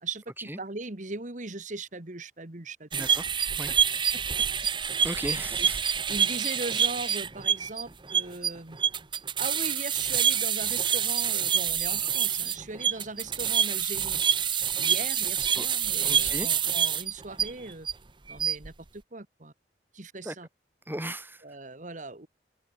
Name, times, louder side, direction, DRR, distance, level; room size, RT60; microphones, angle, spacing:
voice 1, 0.0-3.1 4.8-4.9 5.6-5.7 6.1-8.8 9.4-14.2 14.8-17.9 18.3-19.5 19.9-20.5 21.4-22.3, right 3 dB, 45° right, 1.7 m, -39 dB
voice 2, 2.9-3.3 3.5-3.7 5.0-5.8 15.5-15.7 16.0-16.5 20.2-20.3 20.8-21.4, right 1 dB, 10° right, 6.7 m, -36 dB
sound 1, 2.9-17.9 18.3-18.7, right 8 dB, 25° right, 0.9 m, -27 dB
open air
head